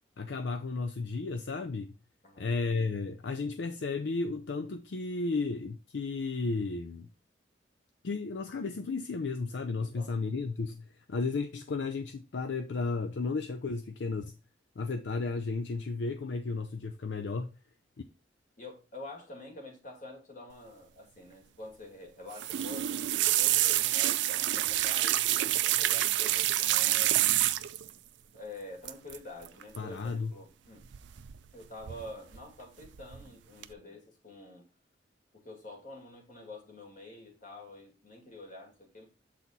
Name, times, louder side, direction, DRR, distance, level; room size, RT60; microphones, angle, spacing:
voice 1, 0.2-1.9 2.4-7.1 8.0-14.3 14.8-17.5 29.8-30.3, left 3 dB, 70° left, 0.5 m, -33 dB
voice 2, 9.8-10.1 18.6-27.4 28.3-30.8 31.5-34.6 35.3-39.1, left 1 dB, 45° left, 2.3 m, -47 dB
sound 1, 22.3-27.9 28.9-29.2 29.4-29.8 30.9-31.5 31.8-32.4 32.8-33.2 33.6-33.7, right 14 dB, 75° right, 0.4 m, -27 dB
7.3 x 4.2 x 4.0 m
head